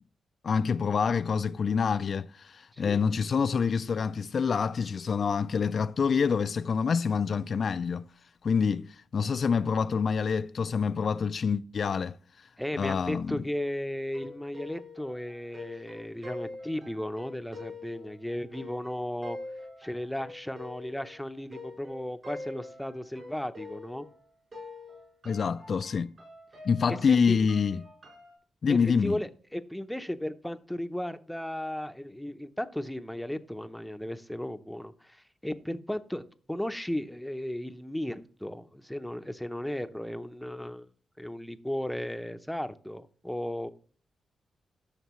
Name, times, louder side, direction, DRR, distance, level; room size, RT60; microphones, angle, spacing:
voice 1, 0.4-8.1 8.4-12.2 12.8-13.4 25.2-26.1 26.6-27.8 28.6-29.2, left 6 dB, 55° left, 0.3 m, -27 dB
voice 2, 12.6-19.4 19.8-24.1 26.9-27.4 28.7-40.9 41.2-43.7, left 1 dB, 5° left, 0.7 m, -35 dB
sound 1, 14.1-24.2 24.5-28.3, left 2 dB, 50° right, 4.8 m, -45 dB
12.5 x 6.5 x 3.1 m
cardioid pair, 95°, 0 cm